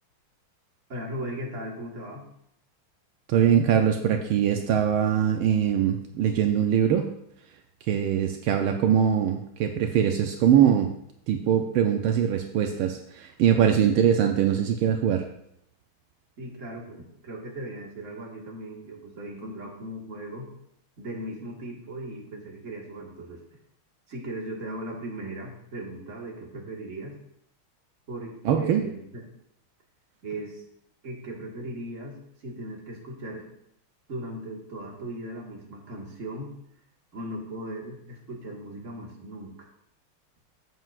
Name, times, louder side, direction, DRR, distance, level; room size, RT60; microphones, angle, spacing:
voice 1, 0.9-2.2 16.4-20.5 21.0-23.4 24.1-27.2 28.1-29.3 30.2-30.6 31.0-33.4 34.1-36.5 37.1-39.5, right 1 dB, 40° right, -1 dB, 1.9 m, -38 dB
voice 2, 3.3-7.0 7.9-10.9 11.3-15.2 28.4-28.8, right 9 dB, 80° right, 4 dB, 1.5 m, -22 dB
13.0 x 7.8 x 2.5 m, 0.75 s
omnidirectional pair, 2.3 m